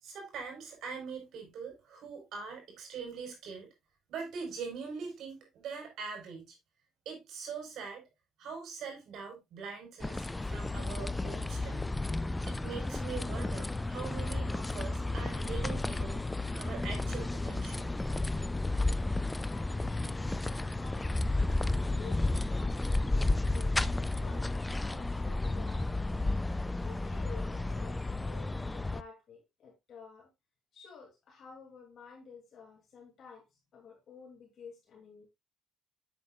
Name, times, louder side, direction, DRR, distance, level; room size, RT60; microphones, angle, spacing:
voice 1, 0.0-3.7 4.1-6.6 7.0-8.0 8.4-11.9 12.5-16.2 16.6-17.9, right 5 dB, 65° right, 4.7 m, -42 dB
sound 1, 10.0-29.0, left 2 dB, 10° left, 0.4 m, -32 dB
voice 2, 19.5-21.2 21.6-23.7 24.2-26.2 26.8-30.3 30.7-35.3, left 6 dB, 50° left, 2.8 m, -52 dB
9.7 x 7.8 x 2.4 m
cardioid pair, 110°, 0 cm